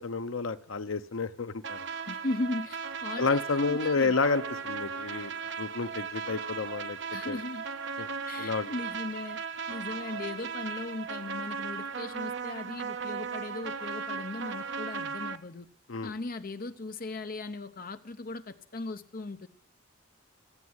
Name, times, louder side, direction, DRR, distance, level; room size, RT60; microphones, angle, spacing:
voice 1, 0.0-1.8 3.2-7.0 7.2-7.4 8.0-8.1 8.4-8.7 15.9-16.1, left 4 dB, 75° left, 11 dB, 0.7 m, -30 dB
sound 1, 1.6-15.4, right 5 dB, 60° right, 0.7 m, -37 dB
voice 2, 2.1-4.2 7.1-7.6 8.3-9.4 9.7-15.7 16.0-19.5, left 2 dB, 45° left, 10 dB, 0.7 m, -37 dB
16.0 x 7.3 x 9.6 m, 0.66 s
head